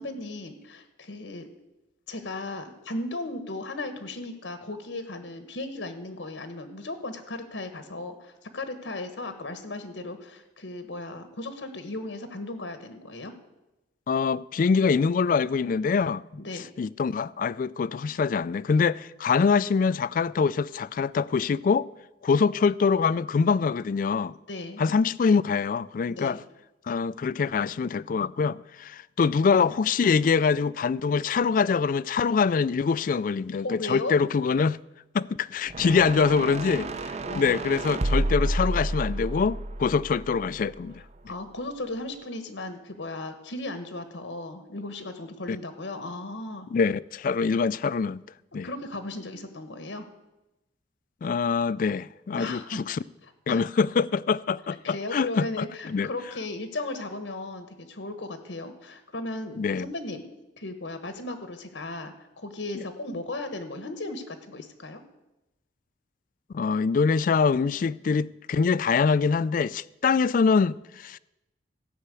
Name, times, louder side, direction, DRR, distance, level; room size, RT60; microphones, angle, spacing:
voice 1, 0.0-1.5 2.1-13.3 16.3-16.7 24.5-24.8 26.0-26.4 33.6-34.1 37.3-37.5 41.3-46.7 48.6-50.1 52.3-52.8 53.2-53.6 54.8-60.2 60.6-65.0, left 2 dB, 85° left, 1.3 m, -36 dB
voice 2, 14.1-16.2 16.8-21.9 22.2-24.3 24.8-26.4 26.9-34.8 35.1-41.0 45.5-45.6 46.7-48.2 48.5-48.7 51.2-53.0 53.5-56.1 59.6-59.9 62.7-62.8 66.5-71.2, left 5 dB, 45° left, 0.3 m, -24 dB
sound 1, 35.7-40.9, right 1 dB, 35° right, 0.6 m, -30 dB
14.5 x 5.8 x 8.3 m
head